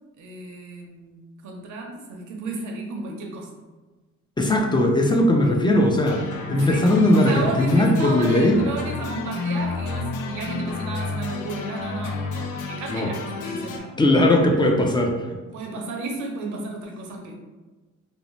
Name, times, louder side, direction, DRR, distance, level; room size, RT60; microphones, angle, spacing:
voice 1, 0.2-1.2 1.4-3.5 6.5-14.9 15.5-17.3, right 3 dB, 75° right, 0 dB, 0.7 m, -33 dB
voice 2, 4.4-8.6 12.9-13.1 14.0-15.4, left 1 dB, 15° left, 1 dB, 0.4 m, -19 dB
sound 1, 6.1-13.8, left 4 dB, 80° left, 0.5 m, -31 dB
2.6 x 2.0 x 3.0 m, 1.2 s
cardioid pair, 90°, 30 cm